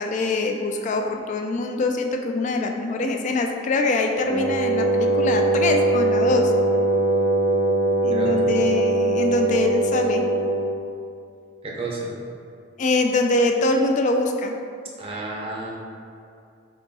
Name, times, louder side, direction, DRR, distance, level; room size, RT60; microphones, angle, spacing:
voice 1, 0.0-6.5 8.0-10.2 12.8-14.6, left 2 dB, 40° left, 4 dB, 0.3 m, -24 dB
Wind instrument woodwind instrument, 4.2-10.8, right 2 dB, 20° left, 0.9 m, -21 dB
voice 2, 11.6-12.1 15.0-15.7, right 2 dB, 30° right, -2 dB, 0.6 m, -31 dB
4.0 x 3.8 x 2.2 m, 2.4 s
head